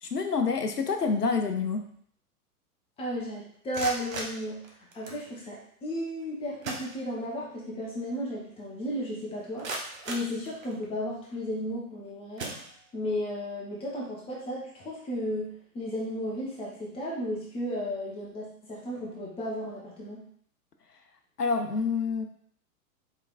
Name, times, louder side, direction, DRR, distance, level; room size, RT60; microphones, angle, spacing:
voice 1, 0.0-1.8 21.4-22.3, left 5 dB, 85° left, 6 dB, 0.7 m, -27 dB
voice 2, 3.0-4.6 4.9-9.7 10.0-12.6 12.9-20.2, equal, 10° left, -4 dB, 0.8 m, -34 dB
sound 1, 3.5-5.3 6.2-6.3 6.6-7.5 7.9-8.0 8.5-8.6 9.2-11.0 11.7-11.9 12.3-13.2, right 2 dB, 60° right, 1.0 m, -39 dB
4.6 x 3.3 x 2.4 m, 0.62 s
figure-of-eight pair, 105°, 46 cm